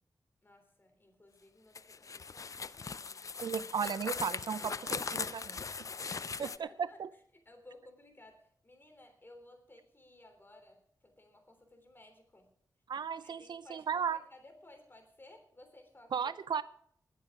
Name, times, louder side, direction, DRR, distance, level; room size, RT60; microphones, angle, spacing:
voice 1, 0.4-3.3 4.4-5.1 5.9-12.5 13.2-16.3, left 1 dB, 30° left, 3.4 m, -58 dB
sound 1, 1.7-6.6, left 5 dB, 45° left, 0.5 m, -39 dB
voice 2, 3.4-5.4 6.4-7.1 12.9-14.2 16.1-16.6, right 7 dB, 75° right, 0.5 m, -35 dB
20.0 x 7.7 x 4.8 m
wide cardioid pair, 85°, 8 cm